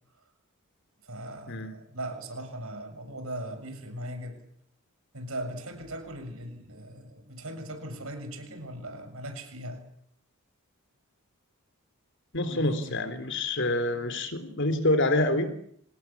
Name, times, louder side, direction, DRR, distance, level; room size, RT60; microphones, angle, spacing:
voice 1, 1.0-4.4 5.1-9.8 12.4-13.0, right 1 dB, 70° right, 7 dB, 7.0 m, -39 dB
voice 2, 12.3-15.5, left 1 dB, 55° left, 10 dB, 3.6 m, -27 dB
26.5 x 20.0 x 8.6 m, 0.69 s
head